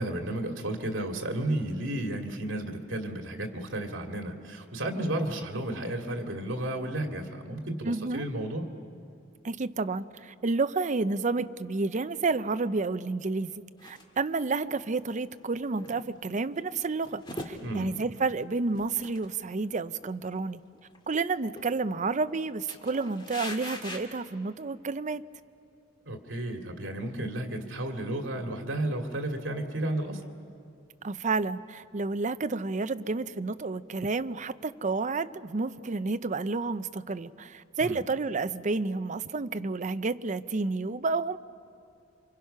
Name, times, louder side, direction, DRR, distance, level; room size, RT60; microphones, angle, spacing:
voice 1, 0.0-8.7 17.6-18.0 26.1-30.2 37.8-38.0, right 1 dB, 75° right, 3 dB, 2.4 m, -33 dB
voice 2, 7.9-8.2 9.4-20.6 21.1-25.2 31.0-41.4, right 3 dB, 40° right, 12 dB, 0.6 m, -30 dB
sound 1, 13.8-14.0 14.7-14.8 15.3-16.4 16.8-18.4 18.7-19.3 19.6-19.7 20.0-20.3 20.7-21.1 21.6-22.3 22.7-24.0, left 1 dB, 25° left, 2.1 m, -42 dB
28.5 x 25.5 x 5.7 m, 2.5 s
head